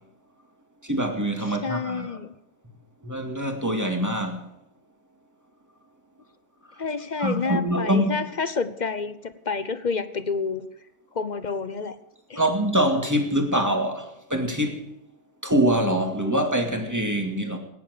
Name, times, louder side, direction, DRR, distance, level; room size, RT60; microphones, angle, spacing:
voice 1, 0.8-2.1 3.0-4.4 7.2-8.1 12.4-14.9 15.4-17.6, right 1 dB, 10° right, 2.2 m, -24 dB
voice 2, 1.4-2.3 6.8-10.7 11.1-12.0 12.3-12.4, left 4 dB, 45° left, 0.6 m, -29 dB
19.0 x 10.5 x 6.7 m
omnidirectional pair, 1.7 m